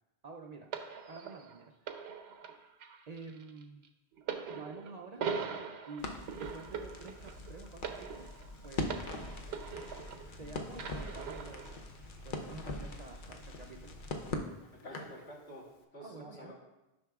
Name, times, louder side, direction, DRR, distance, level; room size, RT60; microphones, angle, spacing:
voice 1, 0.2-0.7 1.1-2.2 3.1-3.9 4.5-5.2 5.9-8.4 8.6-9.1 10.4-11.8 12.2-14.0 16.0-16.5, right 3 dB, 55° right, 2 dB, 0.5 m, -49 dB
sound 1, 0.7-10.4 10.8-11.8 12.6-12.7, right 6 dB, 75° right, 0.9 m, -42 dB
Crackle, 6.0-15.2, left 3 dB, 55° left, 0.8 m, -42 dB
voice 2, 14.7-16.5, equal, 85° left, -3 dB, 1.7 m, -49 dB
10.5 x 5.8 x 2.3 m, 0.99 s
omnidirectional pair, 1.1 m